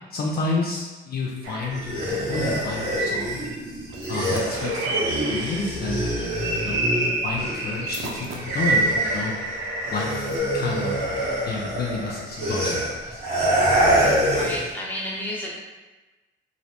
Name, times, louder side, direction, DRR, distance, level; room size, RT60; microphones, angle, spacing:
voice 1, 0.1-3.4 4.1-6.1 6.5-9.3 9.9-11.0 11.4-13.2, left 3 dB, 50° left, -2 dB, 0.4 m, -30 dB
sound 1, 1.4-3.6 3.9-5.8 6.2-10.4, right 2 dB, 85° right, 0.5 m, -28 dB
sound 2, 1.7-7.9 8.2-14.7, equal, 50° right, 1.3 m, -26 dB
voice 2, 14.3-15.6, equal, 10° left, -5 dB, 0.7 m, -31 dB
2.5 x 2.0 x 2.8 m, 1.2 s
cardioid pair, 90°, 20 cm